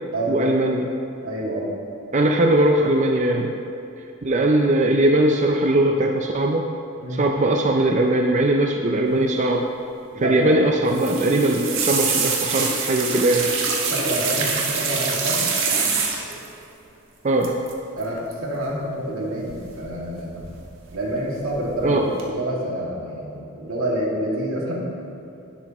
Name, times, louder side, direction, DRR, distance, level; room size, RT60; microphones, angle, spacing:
voice 1, 0.3-0.9 2.1-3.5 4.2-6.6 7.1-9.6 10.2-13.5 17.2-17.6 21.8-22.1, right 1 dB, 35° right, 2 dB, 0.5 m, -20 dB
voice 2, 1.2-1.7 4.4-4.5 7.0-7.3 10.1-10.6 13.9-15.4 18.0-20.4 20.9-24.8, right 1 dB, 85° right, -4 dB, 2.3 m, -28 dB
sound 1, 10.9-16.5 17.4-17.7 18.0-18.3 19.5-20.1 20.4-21.0 21.4-21.8 22.2-22.3, right 5 dB, 60° right, 1.4 m, -25 dB
11.5 x 10.5 x 3.1 m, 2.8 s
head